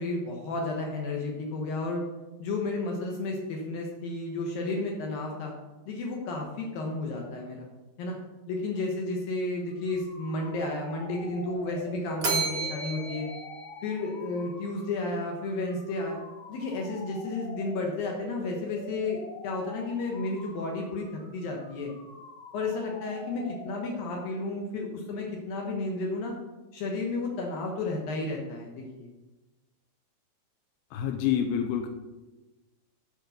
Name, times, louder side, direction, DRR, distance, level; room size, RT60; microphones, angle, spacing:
voice 1, 0.0-2.1 2.4-5.5 5.9-7.7 8.0-8.2 8.5-13.3 13.8-16.2 16.5-21.9 22.5-26.3 26.7-29.1, left 2 dB, 70° left, 0 dB, 2.7 m, -32 dB
sound 1, 9.6-24.3, left 2 dB, 40° left, 3.1 m, -45 dB
Bell, 12.2-14.5, right 4 dB, 80° right, 0.7 m, -33 dB
voice 2, 30.9-31.9, left 9 dB, 85° left, 4 dB, 2.6 m, -27 dB
10.5 x 5.1 x 6.7 m, 1.1 s
omnidirectional pair, 4.6 m